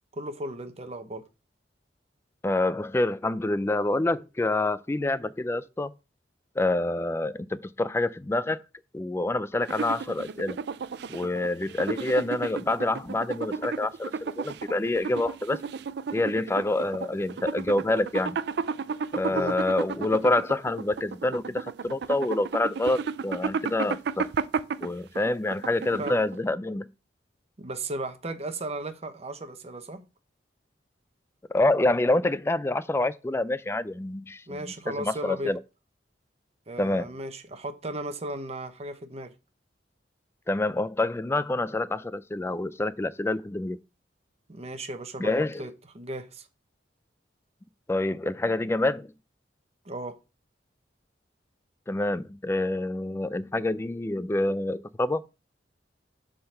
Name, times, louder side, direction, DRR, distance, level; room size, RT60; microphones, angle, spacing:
voice 1, 0.1-1.3 19.3-19.6 26.0-26.2 27.6-30.1 34.5-35.5 36.7-39.3 44.5-45.3 45.6-46.5 49.8-50.2, right 1 dB, 35° right, 0.9 m, -36 dB
voice 2, 2.4-5.9 6.6-8.6 8.9-10.6 11.1-15.6 16.1-18.4 19.1-24.2 24.8-26.9 31.5-34.6 35.0-35.6 36.8-37.1 40.5-43.8 45.2-45.7 47.9-49.1 51.9-55.2, left 2 dB, 15° left, 0.3 m, -27 dB
sound 1, 9.6-26.5, right 5 dB, 60° right, 0.4 m, -33 dB
7.0 x 3.8 x 6.5 m
head